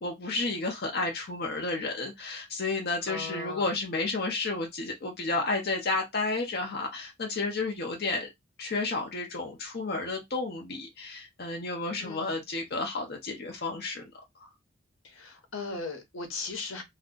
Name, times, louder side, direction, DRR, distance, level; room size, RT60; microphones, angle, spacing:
voice 1, 0.0-8.3 8.6-14.1 14.4-14.5, left 3 dB, 50° left, 0.7 m, -31 dB
voice 2, 3.1-3.7 12.0-12.4 15.0-16.8, left 3 dB, 80° left, 0.9 m, -38 dB
2.5 x 2.2 x 3.7 m
head